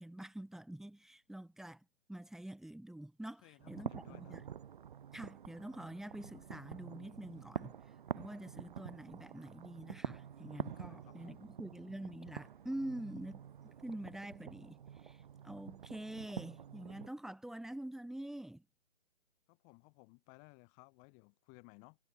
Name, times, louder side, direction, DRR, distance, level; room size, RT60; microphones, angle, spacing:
voice 1, 0.0-4.4 5.1-13.4 13.8-18.6, right 1 dB, ahead, 5.1 m, -46 dB
voice 2, 3.2-4.3 10.7-11.5 19.5-22.0, left 38 dB, 20° left, 5.2 m, -60 dB
sound 1, 3.6-17.1, right 8 dB, 45° right, 7.9 m, -47 dB
figure-of-eight pair, 145°, 34 cm